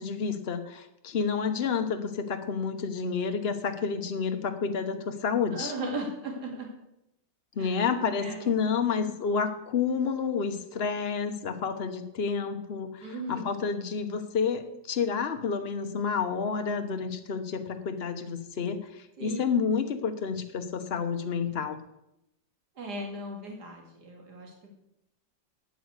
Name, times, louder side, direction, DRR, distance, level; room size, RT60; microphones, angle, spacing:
voice 1, 0.0-5.7 7.5-21.8, left 6 dB, 40° left, 8 dB, 1.0 m, -30 dB
voice 2, 5.5-6.7 7.6-7.8 8.2-8.5 13.0-13.5 19.2-19.4 22.8-24.7, right 1 dB, 55° right, 1 dB, 3.0 m, -37 dB
9.3 x 8.7 x 8.1 m, 0.85 s
omnidirectional pair, 2.1 m